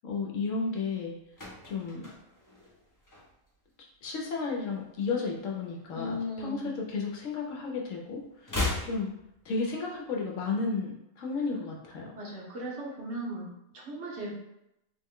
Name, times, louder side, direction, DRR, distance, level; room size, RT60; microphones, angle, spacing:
voice 1, 0.0-1.1 1.6-2.1 4.0-9.1 9.4-12.1, left 4 dB, 70° left, -1 dB, 0.9 m, -33 dB
sound 1, 1.0-3.7 3.9-4.2 4.5-6.0 6.3-7.6 7.9-10.0 10.2-10.3, left 2 dB, 25° left, 0.5 m, -38 dB
voice 2, 5.9-6.7 12.1-14.3, equal, 60° right, -3 dB, 1.1 m, -37 dB
3.6 x 2.1 x 3.6 m, 0.83 s
omnidirectional pair, 1.5 m